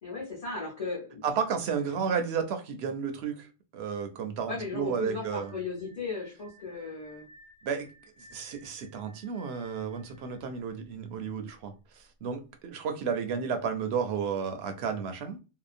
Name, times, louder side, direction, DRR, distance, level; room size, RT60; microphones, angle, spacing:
voice 1, 0.0-1.2 4.5-7.3, left 4 dB, 35° left, 0.9 m, -36 dB
voice 2, 1.2-3.5 3.7-5.5 7.6-7.9 8.3-15.4, right 6 dB, 75° right, 0.9 m, -32 dB
sound 1, 4.5-11.4, equal, 40° right, 0.6 m, -57 dB
2.8 x 2.1 x 2.4 m
omnidirectional pair, 1.1 m